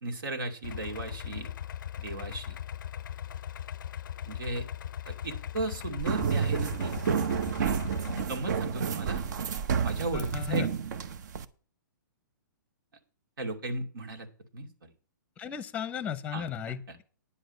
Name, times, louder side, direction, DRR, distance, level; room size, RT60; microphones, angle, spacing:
voice 1, 0.0-1.5 2.0-2.6 4.3-4.7 5.1-6.9 7.7-9.2 9.8-10.6 13.4-14.3 14.5-14.9 16.3-17.0, right 2 dB, 85° right, 3 dB, 2.4 m, -36 dB
Idling, 0.6-8.2, left 10 dB, 70° left, 0.4 m, -39 dB
sound 1, 6.0-11.4, right 6 dB, 60° right, 0.8 m, -30 dB
voice 2, 10.1-10.7 15.4-17.0, left 8 dB, 10° left, 15 dB, 0.7 m, -35 dB
10.0 x 7.9 x 5.2 m, 0.39 s
hypercardioid pair, 145°, 11 cm